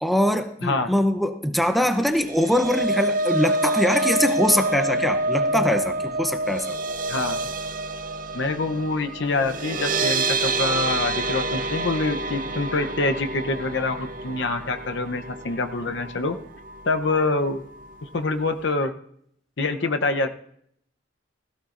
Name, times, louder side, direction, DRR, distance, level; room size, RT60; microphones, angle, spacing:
voice 1, 0.0-6.8, equal, ahead, 8 dB, 0.7 m, -23 dB
sound 1, 2.1-16.3 16.7-16.9 17.2-17.3, right 2 dB, 45° right, 0.6 m, -27 dB
voice 2, 8.3-16.4 16.8-17.6 18.0-18.9 19.6-20.4, left 3 dB, 65° left, 7 dB, 0.8 m, -25 dB
17.0 x 15.0 x 2.6 m, 0.69 s
head